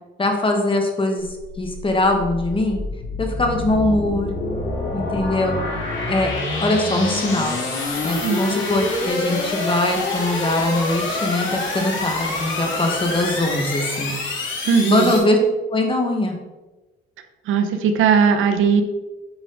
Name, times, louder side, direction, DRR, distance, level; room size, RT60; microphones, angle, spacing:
voice 1, 0.2-2.8 3.2-4.3 4.9-5.6 6.1-6.3 6.6-7.6 8.0-14.1 14.9-15.4 15.7-16.4, left 2 dB, 25° left, 2 dB, 1.6 m, -21 dB
sound 1, 1.2-15.2, left 2 dB, 75° left, 2.5 m, -27 dB
voice 2, 14.7-15.1 17.5-18.8, right 6 dB, 85° right, 7 dB, 0.8 m, -18 dB
8.2 x 4.9 x 4.0 m, 1.1 s
cardioid pair, 90°, 20 cm